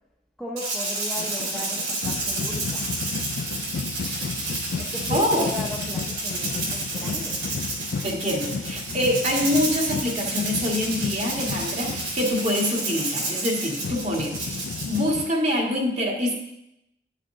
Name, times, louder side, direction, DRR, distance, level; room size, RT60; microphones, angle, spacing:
voice 1, 0.4-2.9 4.8-7.4, left 2 dB, ahead, -3 dB, 0.7 m, -36 dB
Rattle (instrument), 0.6-15.1, right 2 dB, 80° right, 3.3 m, -30 dB
sound 1, 1.2-15.3, left 5 dB, 65° left, 0.3 m, -34 dB
voice 2, 5.1-5.5 8.0-16.3, left 1 dB, 40° right, -1 dB, 1.6 m, -25 dB
11.0 x 6.6 x 3.7 m, 0.83 s
head